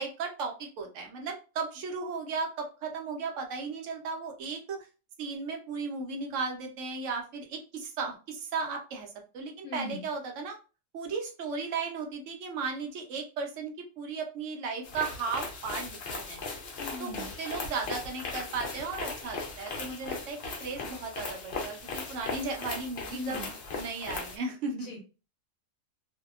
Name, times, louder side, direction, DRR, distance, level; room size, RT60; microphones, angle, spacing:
voice 1, 0.0-4.8 5.2-10.6 10.9-16.4 17.0-23.4 23.7-25.0, right 4 dB, 65° right, 3 dB, 0.9 m, -35 dB
voice 2, 9.6-10.0 16.8-17.3 23.1-23.5 24.7-25.0, left 2 dB, 80° left, 0 dB, 1.0 m, -39 dB
sound 1, 14.8-24.4, left 4 dB, 55° left, 0.8 m, -38 dB
2.7 x 2.1 x 2.3 m, 0.34 s
omnidirectional pair, 1.4 m